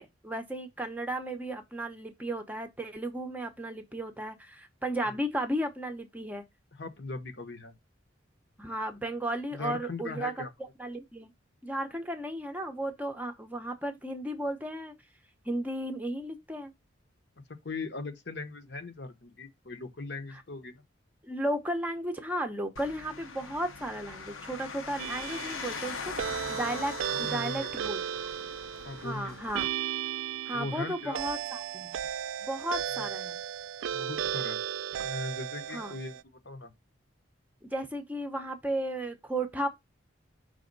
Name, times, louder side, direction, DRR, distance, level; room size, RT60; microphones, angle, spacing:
voice 1, 0.0-6.4 8.6-10.4 10.8-11.3 11.6-14.9 15.4-16.7 20.3-20.4 21.2-28.0 29.0-29.7 30.5-32.0 32.4-33.4 35.7-36.0 37.6-39.7, right 1 dB, 10° right, 0.7 m, -34 dB
voice 2, 6.7-7.7 9.5-10.5 17.6-20.8 27.1-27.7 28.8-29.4 30.5-31.2 33.0-33.1 33.9-34.6 35.0-36.7, left 3 dB, 55° left, 0.8 m, -39 dB
sound 1, 22.8-29.7, left 5 dB, 85° left, 0.9 m, -41 dB
sound 2, 25.0-36.2, right 10 dB, 80° right, 0.3 m, -35 dB
5.2 x 3.5 x 5.2 m
head